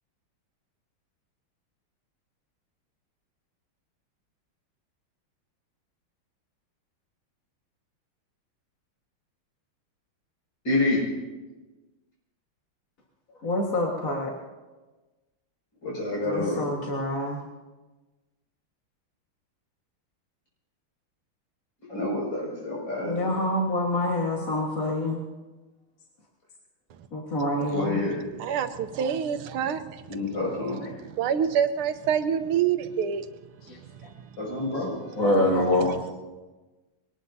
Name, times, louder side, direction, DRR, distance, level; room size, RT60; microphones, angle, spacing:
voice 1, 10.6-11.1 15.8-16.7 21.9-23.3 27.7-28.2 30.1-30.8 34.4-35.5 35.7-36.0, left 2 dB, 60° left, -4 dB, 7.1 m, -28 dB
voice 2, 13.4-14.3 16.2-17.4 23.0-25.2 27.1-28.0 30.8-30.9 33.7-33.8 35.2-35.9, left 1 dB, 40° left, -2 dB, 2.0 m, -26 dB
voice 3, 28.4-30.1 31.0-33.3 33.7-34.1, right 8 dB, 85° right, 9 dB, 1.7 m, -27 dB
23.0 x 18.5 x 2.8 m, 1.2 s
omnidirectional pair, 2.3 m